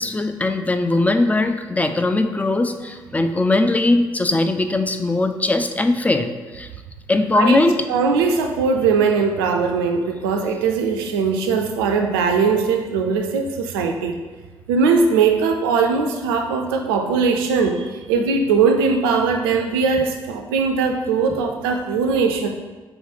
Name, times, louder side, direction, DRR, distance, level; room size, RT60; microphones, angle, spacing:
voice 1, 0.0-6.3 6.5-6.7 7.1-7.8, left 2 dB, 10° left, 7 dB, 0.3 m, -20 dB
voice 2, 7.9-14.2 14.7-22.5, right 5 dB, 80° right, 4 dB, 0.4 m, -20 dB
3.5 x 3.0 x 3.8 m, 1.3 s
figure-of-eight pair, 40°, 12 cm